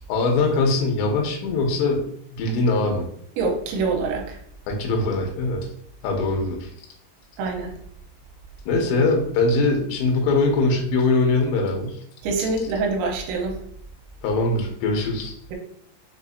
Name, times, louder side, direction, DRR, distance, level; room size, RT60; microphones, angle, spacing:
voice 1, 0.1-2.1 2.4-3.1 4.7-5.6 6.0-6.7 8.7-12.0 14.2-15.3, left 3 dB, 85° left, 1 dB, 3.1 m, -22 dB
voice 2, 3.4-4.4 7.4-7.8 12.2-13.6, right 3 dB, 85° right, 1 dB, 3.0 m, -25 dB
6.9 x 2.5 x 2.6 m, 0.66 s
omnidirectional pair, 5.3 m